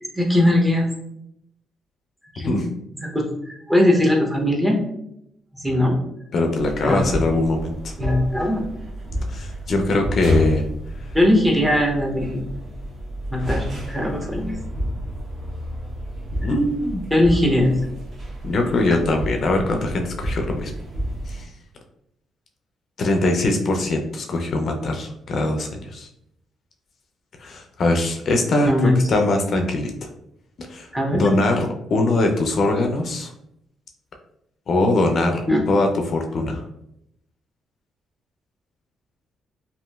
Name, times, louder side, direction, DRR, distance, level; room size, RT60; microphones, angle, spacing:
voice 1, 0.0-0.9 2.3-2.7 3.0-4.8 5.5-6.0 6.8-7.1 8.0-8.6 11.1-12.5 13.3-14.6 16.4-16.5 17.1-17.7 28.6-29.0 30.9-31.3 35.5-35.6, left 1 dB, 10° right, 0 dB, 0.6 m, -20 dB
voice 2, 6.3-7.9 9.3-10.7 11.0-11.1 16.4-17.0 18.4-20.7 21.3-21.5 23.0-26.1 27.4-30.1 30.7-33.3 34.7-36.6, left 2 dB, 55° left, 3 dB, 0.4 m, -22 dB
sound 1, 6.6-21.4, equal, 45° right, 0.9 m, -30 dB
2.9 x 2.4 x 2.2 m, 0.78 s
cardioid pair, 90°, 0 cm